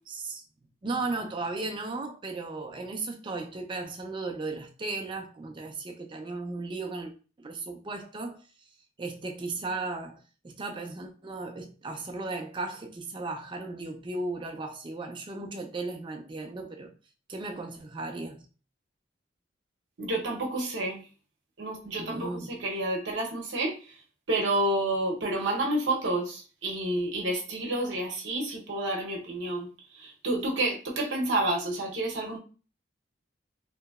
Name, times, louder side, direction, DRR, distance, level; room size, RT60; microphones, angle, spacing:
voice 1, 0.1-0.4 0.8-7.1 7.4-8.4 9.0-16.9 17.3-18.4 22.0-22.6, right 3 dB, 25° right, 0.4 m, -36 dB
voice 2, 20.0-21.0 21.6-22.2 22.5-23.8 24.3-29.7 30.0-32.4, right 1 dB, 75° right, 0.8 m, -29 dB
3.0 x 2.6 x 2.3 m
head